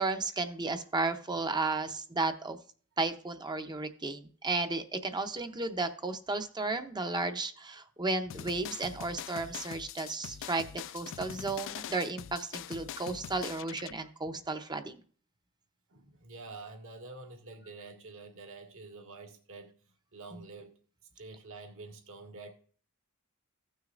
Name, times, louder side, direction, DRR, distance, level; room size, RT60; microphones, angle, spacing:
voice 1, 0.0-2.6 3.0-15.0, right 3 dB, 20° right, 8 dB, 0.7 m, -33 dB
sound 1, 8.3-13.9, left 10 dB, 60° left, 0.3 m, -43 dB
voice 2, 15.9-19.7 20.1-20.8 21.2-22.5, right 3 dB, 65° right, 2 dB, 1.7 m, -47 dB
16.0 x 6.4 x 2.5 m, 0.44 s
head